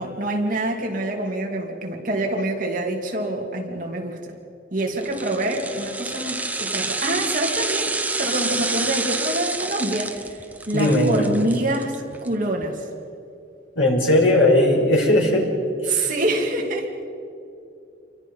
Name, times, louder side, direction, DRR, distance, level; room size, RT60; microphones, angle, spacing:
voice 1, 0.0-4.4 4.7-12.9 15.9-17.0, right 1 dB, 40° right, 1 dB, 2.7 m, -26 dB
sound 1, 5.0-12.3 12.6-12.7, right 3 dB, 10° right, 0.8 m, -28 dB
voice 2, 10.7-11.3 13.8-15.4 15.8-16.1, left 1 dB, 80° left, 0 dB, 5.6 m, -18 dB
29.0 x 24.0 x 5.5 m, 2.7 s
head